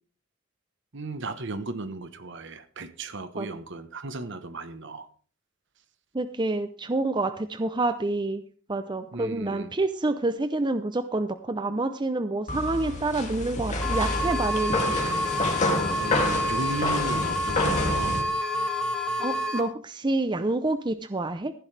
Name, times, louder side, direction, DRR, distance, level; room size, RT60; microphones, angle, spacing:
voice 1, 0.9-5.1 9.1-9.7 16.0-18.2, right 3 dB, 60° right, 11 dB, 1.2 m, -35 dB
voice 2, 6.1-8.4 8.7-15.0 19.2-21.5, right 2 dB, 25° right, 10 dB, 0.7 m, -28 dB
sound 1, 12.5-18.2, left 2 dB, 35° left, 2.7 m, -28 dB
sound 2, 13.8-19.6, equal, 5° left, 2.0 m, -28 dB
15.0 x 11.5 x 3.4 m, 0.39 s
head